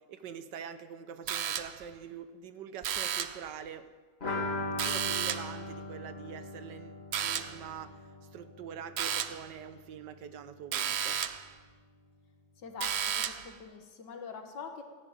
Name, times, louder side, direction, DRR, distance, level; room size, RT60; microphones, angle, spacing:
voice 1, 0.0-3.9 4.4-11.2, right 8 dB, 85° right, 11 dB, 1.5 m, -45 dB
sound 1, 1.3-1.9 2.8-3.5 4.8-5.6 7.1-7.7 9.0-9.5 10.7-11.5 12.8-13.5, right 9 dB, 65° right, 0.6 m, -33 dB
sound 2, 4.2-9.8 10.1-10.2 10.5-10.6, left 2 dB, 35° left, 2.7 m, -39 dB
voice 2, 12.6-14.8, left 5 dB, 85° left, 5 dB, 2.2 m, -44 dB
15.0 x 9.9 x 9.0 m, 1.5 s
omnidirectional pair, 1.9 m